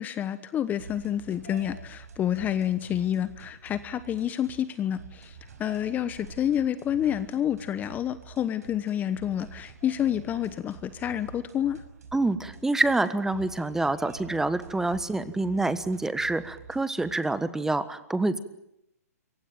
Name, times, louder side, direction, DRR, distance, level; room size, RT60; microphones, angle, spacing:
voice 1, 0.0-11.8, left 10 dB, 20° left, 14 dB, 1.1 m, -29 dB
sound 1, 0.8-17.5, right 5 dB, 70° right, 5.8 m, -48 dB
voice 2, 12.1-18.4, right 2 dB, 5° right, 14 dB, 1.3 m, -27 dB
27.0 x 23.5 x 9.0 m, 0.83 s
hypercardioid pair, 130°, 9 cm